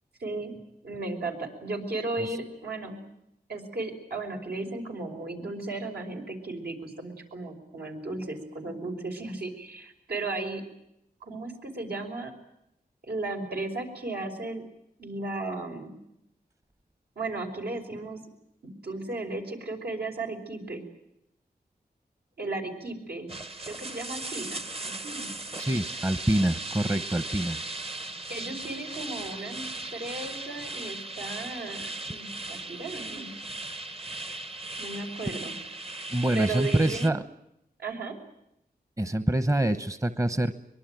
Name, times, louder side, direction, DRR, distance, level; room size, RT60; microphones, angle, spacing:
voice 1, 0.2-0.5 0.8-3.0 3.5-10.6 11.2-12.3 13.0-14.6 15.0-15.9 17.2-18.2 18.8-20.8 22.4-23.3 23.7-25.3 28.3-29.6 29.9-33.3 34.8-35.5 36.3-37.1 37.8-38.2, right 2 dB, 75° right, 1 dB, 5.6 m, -35 dB
sound 1, 23.3-37.1, right 2 dB, 35° right, 1.2 m, -37 dB
voice 2, 25.5-27.6 35.3-35.4 36.1-37.3 39.0-40.6, right 1 dB, 20° right, 11 dB, 1.0 m, -26 dB
24.0 x 22.5 x 9.2 m, 0.82 s
wide cardioid pair, 85°, 16 cm